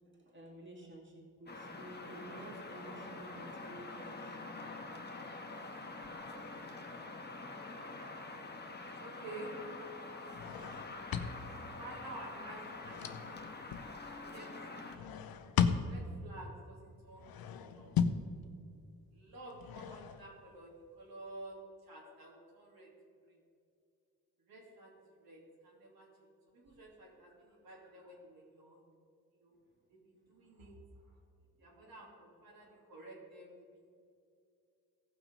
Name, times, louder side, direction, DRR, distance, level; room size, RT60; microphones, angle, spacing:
voice 1, 0.1-4.4 5.8-6.1, right 2 dB, 35° right, -1 dB, 2.3 m, -52 dB
sound 1, 1.5-15.0, left 3 dB, 30° left, 1.3 m, -46 dB
voice 2, 7.3-7.7 9.0-9.6 11.8-13.5 14.3-15.0 15.8-17.9 19.1-21.6 21.8-22.9 23.2-23.4 24.5-24.9 25.2-28.9 29.3-29.5 29.9-30.8 31.1-31.2 31.6-33.5 33.8-33.9, right 2 dB, 85° right, -4 dB, 3.0 m, -52 dB
sound 2, 10.3-11.8 12.5-13.9 14.9-16.3 17.1-18.3 19.5-20.5, left 7 dB, 85° left, 0.7 m, -36 dB
15.5 x 6.0 x 5.4 m, 2.4 s
cardioid pair, 70°, 35 cm